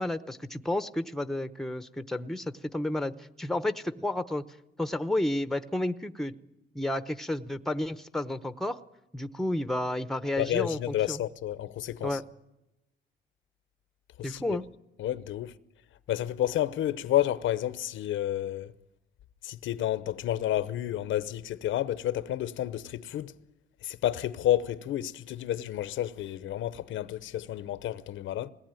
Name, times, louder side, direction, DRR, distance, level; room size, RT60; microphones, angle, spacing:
voice 1, 0.0-4.4 4.8-6.3 6.7-8.8 9.1-11.2 12.0-12.2 14.2-14.6, left 1 dB, ahead, 0.9 m, -31 dB
voice 2, 10.4-12.2 14.2-14.6 15.0-15.5 16.1-18.7 19.4-23.3 23.8-28.5, left 12 dB, 75° left, 0.8 m, -30 dB
21.0 x 18.0 x 9.1 m
cardioid pair, 90°, 20 cm